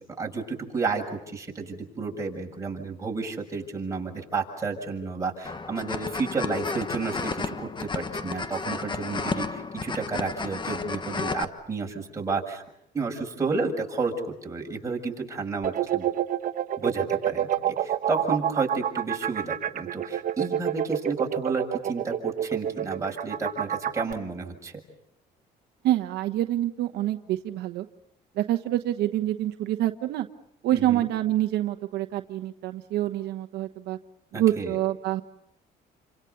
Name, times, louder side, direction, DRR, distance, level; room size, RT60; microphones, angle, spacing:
voice 1, 0.0-12.6 12.9-16.1 16.8-24.8 30.7-31.1 34.3-34.8, right 4 dB, 20° right, 0 dB, 7.1 m, -31 dB
sound 1, 5.4-11.4, left 4 dB, 30° left, 1.4 m, -32 dB
sound 2, 15.6-24.1, right 10 dB, 55° right, 1.2 m, -28 dB
voice 2, 25.8-27.9 28.3-30.3 30.6-34.0 34.3-35.2, right 13 dB, 75° right, 7 dB, 1.1 m, -26 dB
29.5 x 26.0 x 6.9 m, 0.79 s
cardioid pair, 110°, 17 cm